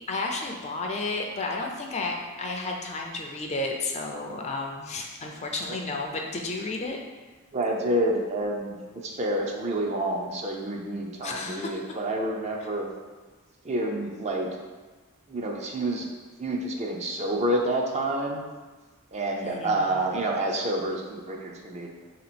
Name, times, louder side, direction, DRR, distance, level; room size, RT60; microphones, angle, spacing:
voice 1, 0.0-7.0 11.2-11.8 19.4-20.0, left 2 dB, 30° left, 1 dB, 0.4 m, -32 dB
voice 2, 7.5-8.8 9.0-12.9 13.6-14.5 15.3-16.1 16.4-18.4 19.1-21.9, right 1 dB, 30° right, 1 dB, 0.5 m, -28 dB
3.4 x 2.9 x 4.2 m, 1.3 s
head